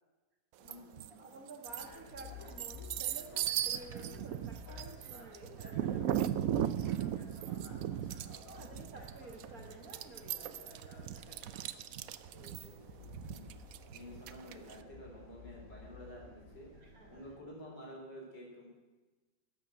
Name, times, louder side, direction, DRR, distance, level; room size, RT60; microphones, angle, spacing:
voice 1, 0.6-1.4 7.0-8.4 12.3-13.5 13.9-16.7 17.1-18.7, equal, 60° left, -2 dB, 4.3 m, -52 dB
sound 1, 0.7-1.1 1.5-14.7, right 11 dB, 75° right, 0.8 m, -37 dB
voice 2, 1.1-6.4 8.2-11.7 16.8-17.3, right 2 dB, 50° right, 2 dB, 2.2 m, -52 dB
sound 2, 1.6-17.4, left 4 dB, 45° left, 2.2 m, -53 dB
12.0 x 7.6 x 7.6 m, 1.2 s
omnidirectional pair, 2.1 m